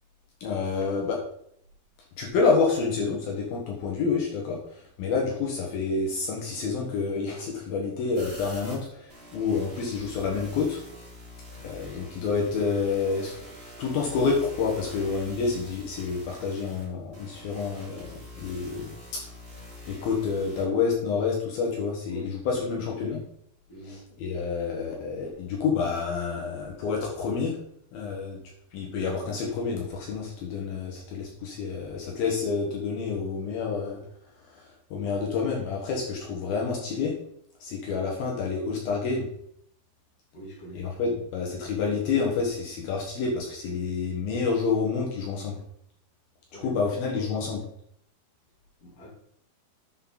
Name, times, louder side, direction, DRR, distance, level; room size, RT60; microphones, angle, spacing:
voice 1, 0.4-1.2 2.2-10.8 11.6-13.4 13.8-18.1 18.4-18.9 19.9-23.2 24.2-27.6 27.9-28.4 28.7-34.0 34.5-34.6 34.9-37.1 37.6-39.3 40.8-45.6 46.6-47.6, left 5 dB, 70° left, -1 dB, 3.1 m, -28 dB
sound 1, 8.1-20.6, left 1 dB, 15° right, 3.9 m, -45 dB
voice 2, 22.5-23.0 23.7-24.0 35.0-35.2 40.3-40.9 46.5-47.5 48.8-49.1, right 1 dB, 25° left, -4 dB, 3.0 m, -45 dB
10.0 x 6.5 x 4.0 m, 0.67 s
omnidirectional pair, 4.7 m